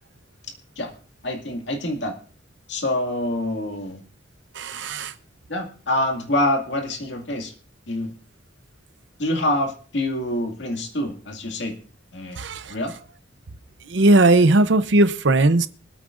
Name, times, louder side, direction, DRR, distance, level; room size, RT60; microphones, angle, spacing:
voice 1, 1.2-2.2 2.7-4.0 5.5-7.5 7.9-8.1 9.2-11.8 12.1-12.4 12.7-12.9, left 1 dB, 65° left, 3 dB, 2.2 m, -26 dB
voice 2, 4.5-5.1 12.4-12.7 13.9-15.7, right 2 dB, 65° right, 12 dB, 0.8 m, -17 dB
25.5 x 8.6 x 2.6 m, 0.40 s
head